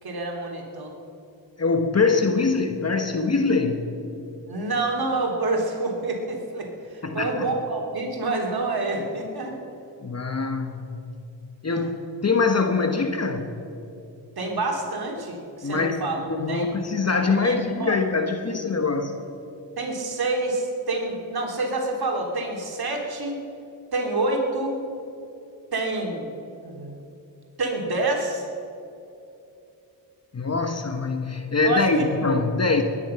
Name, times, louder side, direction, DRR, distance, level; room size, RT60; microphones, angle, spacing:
voice 1, 0.0-0.9 4.5-9.6 11.7-11.9 14.4-16.2 16.5-16.7 17.3-18.0 19.8-23.4 23.9-24.8 25.7-26.3 26.6-26.9 27.6-28.4 31.6-32.1, right 2 dB, 55° right, 0 dB, 3.3 m, -27 dB
voice 2, 1.6-4.0 7.0-7.5 10.0-11.0 11.6-11.9 12.2-13.6 15.6-16.0 16.3-19.2 30.3-32.8, left 4 dB, 35° left, 6 dB, 1.3 m, -23 dB
22.0 x 10.0 x 5.9 m, 2.8 s
cardioid pair, 55°, 44 cm